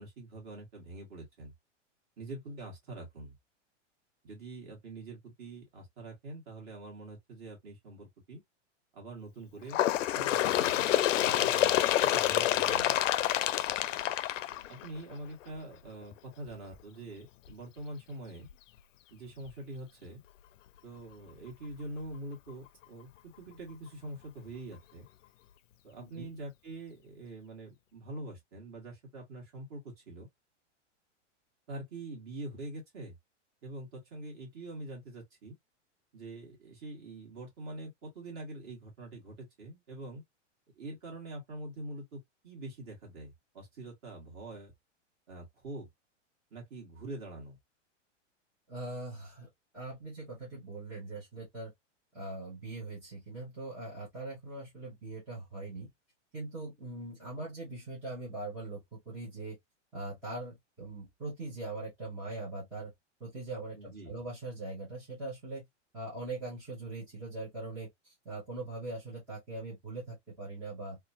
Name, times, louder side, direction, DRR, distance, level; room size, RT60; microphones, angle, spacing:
voice 1, 0.0-1.5 2.2-3.4 4.2-8.4 8.9-9.8 10.1-10.9 11.5-13.0 14.7-18.5 19.1-20.2 20.8-25.1 25.8-30.3 31.7-33.1 33.6-35.6 36.1-40.2 40.7-44.7 45.3-45.9 46.5-47.6 63.7-64.2, right 2 dB, 30° right, 1.6 m, -44 dB
Bird, 9.7-15.1 16.0-16.1 16.5-16.6 17.5-17.6 18.5-18.6 19.5-19.6, left 13 dB, 80° left, 0.5 m, -27 dB
voice 2, 11.2-11.5 26.0-26.3 48.7-49.5 49.7-51.7 52.1-55.9 56.3-59.6 59.9-62.9 63.2-65.6 65.9-71.0, right 2 dB, 5° right, 0.4 m, -41 dB
2.9 x 2.3 x 2.6 m
supercardioid pair, 170°, 37 cm